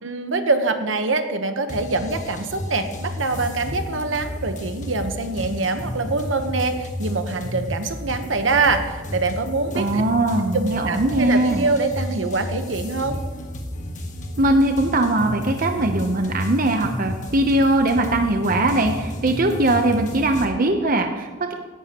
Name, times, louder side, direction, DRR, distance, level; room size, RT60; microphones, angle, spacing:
voice 1, 0.0-10.0 10.5-13.2, right 3 dB, 70° right, 8 dB, 1.0 m, -24 dB
sound 1, 1.7-20.4, left 1 dB, 40° left, 1.4 m, -32 dB
voice 2, 9.7-11.7 14.4-21.5, right 1 dB, 45° right, 5 dB, 0.7 m, -20 dB
16.5 x 11.0 x 3.0 m, 1.4 s
head